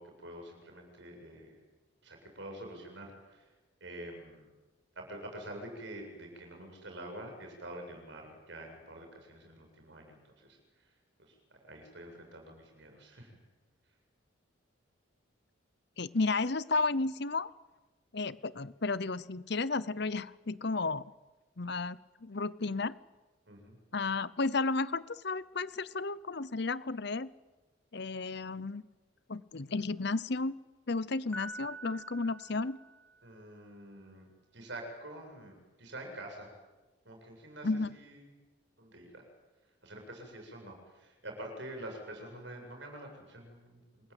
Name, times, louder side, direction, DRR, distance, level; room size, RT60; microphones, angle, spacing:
voice 1, 0.0-1.6 2.0-3.5 3.8-4.5 5.0-10.9 11.2-11.4 11.6-13.4 23.5-23.8 33.2-34.3 34.5-36.5 37.0-38.3 38.8-39.2 39.8-44.1, right 1 dB, 60° right, 2 dB, 7.7 m, -47 dB
voice 2, 16.0-17.5 18.1-21.0 21.6-22.9 23.9-27.3 27.9-28.8 29.3-30.6 30.9-32.8 37.6-38.0, left 3 dB, 55° left, 17 dB, 0.8 m, -33 dB
Piano, 31.3-33.4, right 1 dB, 10° left, 4.9 m, -46 dB
27.5 x 21.5 x 9.1 m, 1.2 s
head